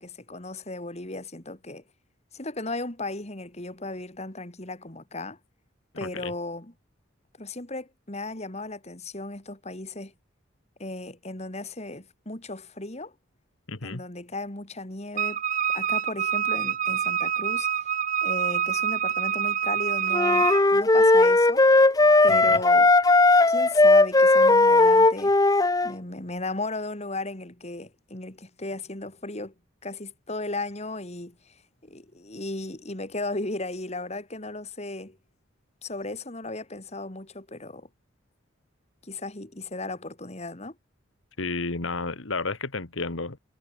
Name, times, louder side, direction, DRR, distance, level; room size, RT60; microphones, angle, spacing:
voice 1, 0.0-1.8 2.3-5.4 6.0-6.7 7.4-10.1 10.8-13.1 13.8-15.4 15.7-18.0 18.2-21.6 22.2-22.9 23.5-25.3 25.8-29.5 29.8-35.2 35.8-37.9 39.0-40.8, left 2 dB, 35° left, 2.8 m, -36 dB
voice 2, 6.0-6.3 13.7-14.0 22.3-22.6 41.4-43.4, left 3 dB, 85° left, 1.8 m, -32 dB
Wind instrument woodwind instrument, 15.2-20.7, right 8 dB, 40° right, 0.6 m, -26 dB
sound 1, 20.1-25.9, left 2 dB, 20° left, 0.8 m, -17 dB
head